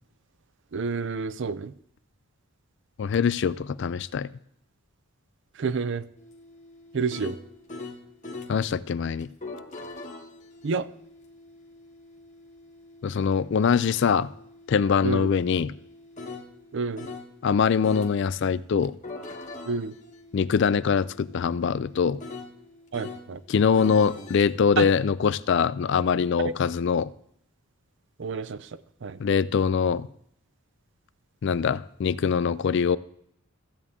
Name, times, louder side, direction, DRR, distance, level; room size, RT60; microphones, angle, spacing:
voice 1, 0.7-1.7 5.6-6.0 6.9-7.4 10.6-10.9 15.0-15.3 16.7-17.1 19.7-19.9 22.9-23.4 24.8-24.9 26.4-26.5 28.2-29.2, right 5 dB, 55° right, 16 dB, 0.4 m, -29 dB
voice 2, 3.0-4.3 8.5-9.3 13.0-14.3 14.7-15.7 17.4-18.9 20.3-22.2 23.5-27.1 29.2-30.1 31.4-33.0, left 6 dB, 55° left, 17 dB, 0.3 m, -23 dB
sound 1, 6.2-8.6 9.2-17.3 17.8-18.2 18.8-23.3 23.7-24.5, left 3 dB, 30° left, 1.1 m, -43 dB
14.5 x 8.2 x 3.6 m, 0.71 s
head